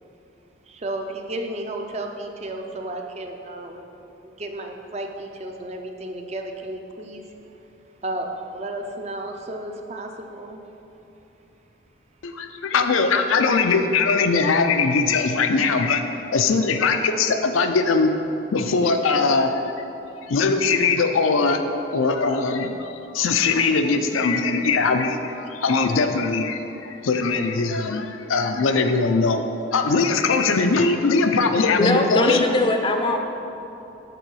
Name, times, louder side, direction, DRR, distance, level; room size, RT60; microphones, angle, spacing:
voice 1, 0.7-3.9 4.2-7.2 8.0-10.6, right 1 dB, 35° right, 3 dB, 0.5 m, -33 dB
voice 2, 12.2-16.0 16.3-18.1 18.5-19.5 20.2-21.6 21.9-29.4 29.7-32.4, left 4 dB, 90° left, 6 dB, 0.5 m, -21 dB
voice 3, 31.8-33.2, left 2 dB, 25° left, 4 dB, 0.4 m, -20 dB
6.8 x 3.9 x 6.2 m, 2.9 s
head